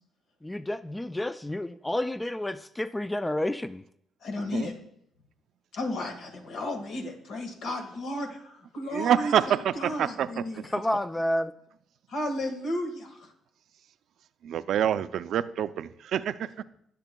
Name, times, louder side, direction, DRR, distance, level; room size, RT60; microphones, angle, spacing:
voice 1, 0.4-3.8 10.7-11.5, left 1 dB, 10° left, 13 dB, 0.3 m, -30 dB
voice 2, 4.2-4.7 5.7-10.6 12.1-13.3, left 1 dB, 75° left, 4 dB, 1.6 m, -33 dB
voice 3, 8.9-10.7 14.4-16.6, right 9 dB, 75° right, 13 dB, 0.4 m, -27 dB
19.0 x 6.8 x 2.2 m, 0.70 s
cardioid pair, 90°, 0 cm